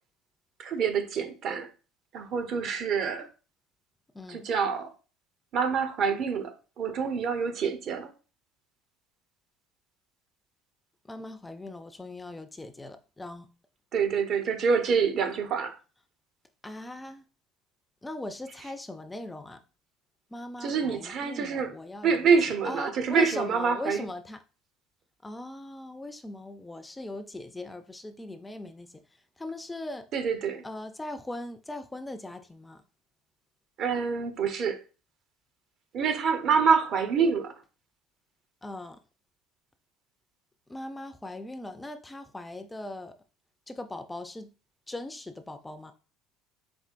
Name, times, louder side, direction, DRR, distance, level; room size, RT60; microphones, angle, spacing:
voice 1, 0.6-1.7 2.1-3.3 4.3-4.9 5.5-8.1 13.9-15.8 18.6-18.7 20.6-21.7 22.0-24.1 30.1-30.6 33.8-34.8 35.9-37.5, right 6 dB, 55° right, 0.7 m, -26 dB
voice 2, 4.1-4.5 11.0-13.5 16.6-17.2 18.0-19.6 20.3-22.3 22.6-24.4 25.2-29.0 29.4-30.1 30.6-32.8 38.6-39.0 40.7-43.1 43.7-44.5 44.9-45.9, left 2 dB, 10° left, 0.4 m, -39 dB
4.3 x 3.6 x 2.5 m
supercardioid pair, 100°, 0 cm